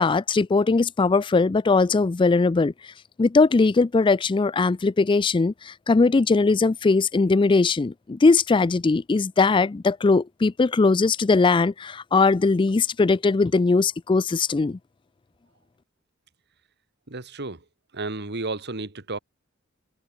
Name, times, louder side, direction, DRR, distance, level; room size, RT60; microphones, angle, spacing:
voice 1, 0.0-2.7 3.2-14.8, left 3 dB, 25° left, 0.4 m, -20 dB
voice 2, 17.1-17.6 17.9-19.2, right 3 dB, 55° right, 2.1 m, -32 dB
head